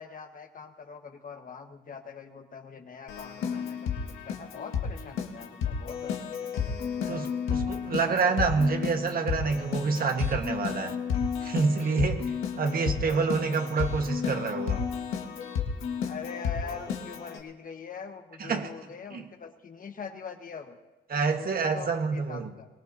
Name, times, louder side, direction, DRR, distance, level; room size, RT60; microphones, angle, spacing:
voice 1, 0.0-6.9 12.6-13.0 16.0-20.8 21.2-22.7, left 6 dB, 45° left, 5 dB, 1.4 m, -43 dB
Keyboard (musical), 3.1-17.4, left 6 dB, 80° left, 1.7 m, -32 dB
voice 2, 7.1-11.0 11.4-12.3 12.6-14.8 18.4-18.7 19.1-19.2 21.1-22.5, right 4 dB, 50° right, 5 dB, 1.5 m, -27 dB
23.0 x 17.5 x 2.8 m, 1.2 s
cardioid pair, 90°, 20 cm